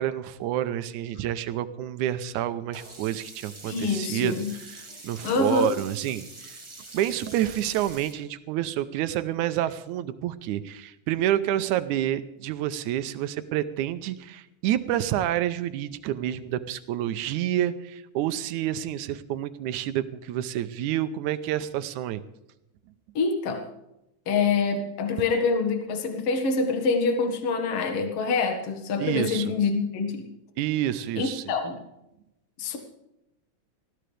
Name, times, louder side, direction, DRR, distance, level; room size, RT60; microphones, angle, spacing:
voice 1, 0.0-6.6 6.9-22.2 29.0-29.5 30.6-31.4, right 12 dB, 90° right, 12 dB, 2.2 m, -28 dB
Sink (filling or washing), 2.7-8.1, right 2 dB, 15° right, 1.2 m, -45 dB
voice 2, 3.7-4.5 5.2-5.7 23.2-23.6 24.3-30.3 31.2-31.8 32.6-32.8, left 4 dB, 55° left, 5 dB, 2.4 m, -26 dB
20.0 x 15.0 x 3.4 m, 0.88 s
omnidirectional pair, 3.4 m